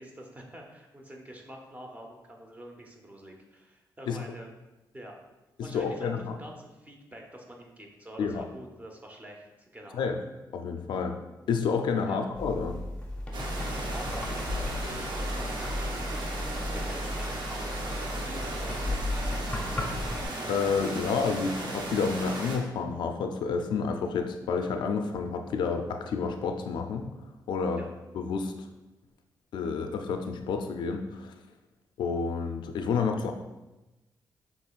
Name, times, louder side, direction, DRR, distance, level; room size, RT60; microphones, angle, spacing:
voice 1, 0.0-4.5 4.9-5.2 5.6-10.0 12.1-12.2 13.6-16.3 16.7-18.9 27.7-27.9, right 1 dB, 20° right, 1 dB, 0.7 m, -46 dB
voice 2, 5.6-6.3 8.2-8.4 9.9-10.2 10.5-11.2 11.5-12.8 20.5-27.1 27.5-27.8 28.1-28.5 29.5-31.3 32.0-33.3, left 5 dB, 80° left, 5 dB, 0.4 m, -29 dB
sound 1, 12.3-20.3, left 1 dB, 15° left, 0.8 m, -34 dB
sound 2, 13.3-22.6, right 2 dB, 75° right, 0.7 m, -36 dB
6.0 x 3.0 x 2.4 m, 1.0 s
cardioid pair, 95°, 8 cm